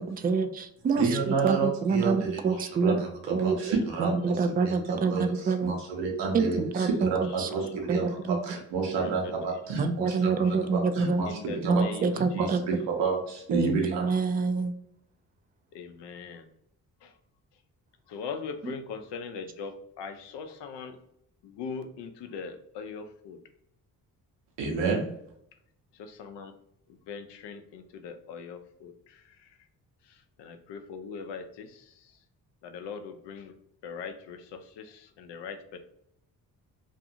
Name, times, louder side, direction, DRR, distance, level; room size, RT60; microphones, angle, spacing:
voice 1, 0.0-3.6 4.0-5.8 6.3-7.5 7.9-8.4 9.8-11.2 11.6-12.6 13.5-14.7, right 4 dB, 25° right, 9 dB, 0.3 m, -27 dB
voice 2, 1.0-11.8 12.1-14.1 24.6-25.0, right 4 dB, 75° right, -1 dB, 0.8 m, -30 dB
voice 3, 9.0-9.8 10.4-10.6 11.2-12.5 15.7-16.5 17.0-17.1 18.1-21.0 21.4-23.4 25.9-26.5 26.9-29.6 30.0-32.1 32.6-33.5 33.8-35.8, left 5 dB, 75° left, 7 dB, 0.6 m, -41 dB
2.5 x 2.4 x 2.7 m, 0.73 s
supercardioid pair, 50°, 42 cm